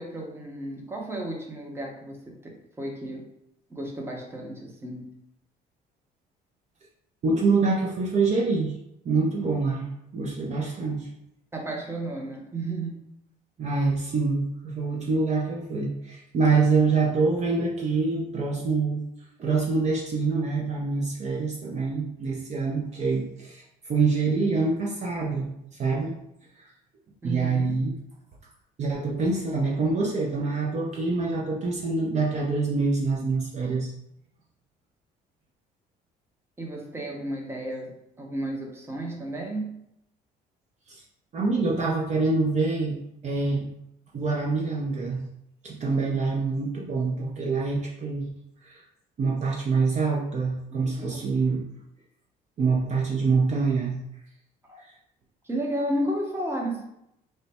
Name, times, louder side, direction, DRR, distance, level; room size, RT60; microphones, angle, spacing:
voice 1, 0.0-3.3 3.7-5.1 11.5-13.0 27.2-27.8 36.6-39.8 50.8-51.3 54.7-54.8 55.4-56.8, right 1 dB, 15° right, 0 dB, 0.8 m, -33 dB
voice 2, 7.2-8.7 9.0-11.1 13.6-19.0 19.4-25.5 25.8-26.2 26.6-26.7 27.2-28.0 28.8-33.9 40.9-41.0 41.3-43.0 43.2-43.7 44.1-45.3 45.6-48.3 48.6-48.8 49.2-51.6 52.6-54.0 54.8-54.9, right 4 dB, 45° right, -2 dB, 0.6 m, -25 dB
3.2 x 2.1 x 4.1 m, 0.79 s
cardioid pair, 110°, 17 cm